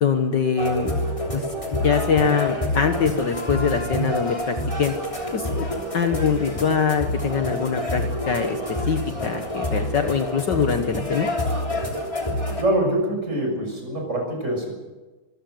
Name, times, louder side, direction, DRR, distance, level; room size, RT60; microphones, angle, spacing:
voice 1, 0.0-0.9 1.3-4.9 5.3-5.7 5.9-8.6 8.9-11.3, left 6 dB, 55° left, 7 dB, 1.8 m, -23 dB
sound 1, 0.6-12.6, left 1 dB, 15° left, 3.2 m, -27 dB
voice 2, 12.6-14.8, right 1 dB, 30° right, 1 dB, 6.7 m, -24 dB
25.0 x 15.5 x 7.8 m, 1.2 s
omnidirectional pair, 2.4 m